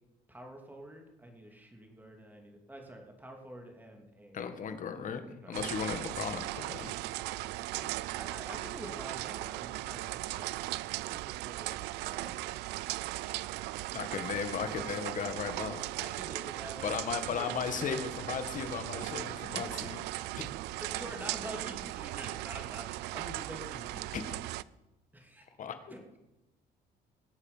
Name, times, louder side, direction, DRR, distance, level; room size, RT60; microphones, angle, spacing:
voice 1, 0.3-4.4 5.4-5.6 7.8-10.5 11.1-12.4 16.0-17.5 19.5-19.9 20.8-24.1 25.1-25.5 25.9-26.0, right 1 dB, 10° right, 2 dB, 3.0 m, -47 dB
voice 2, 4.3-5.2 5.5-6.9 13.9-15.8 16.8-20.0 20.4-20.5 24.1-24.3 25.6-25.8, left 6 dB, 50° left, 8 dB, 1.8 m, -36 dB
sound 1, 5.5-24.6, right 18 dB, 90° right, 0.4 m, -38 dB
21.0 x 8.3 x 5.7 m, 0.98 s
cardioid pair, 110°, 17 cm